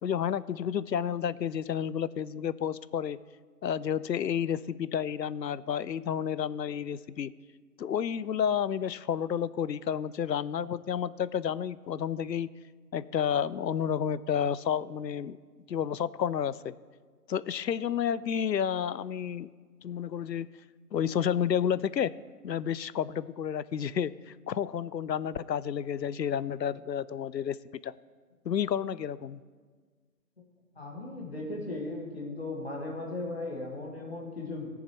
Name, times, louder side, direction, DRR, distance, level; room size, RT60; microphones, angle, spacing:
voice 1, 0.0-3.2 3.6-7.3 7.8-12.5 12.9-15.4 15.7-16.7 17.3-19.5 19.8-20.5 20.9-22.1 22.4-24.1 24.5-27.6 27.8-27.9 28.5-29.4, left 8 dB, 85° left, 18 dB, 0.5 m, -30 dB
voice 2, 30.8-34.7, left 2 dB, 40° left, -1 dB, 1.9 m, -37 dB
19.0 x 7.1 x 3.1 m, 1.6 s
figure-of-eight pair, 165°, 49 cm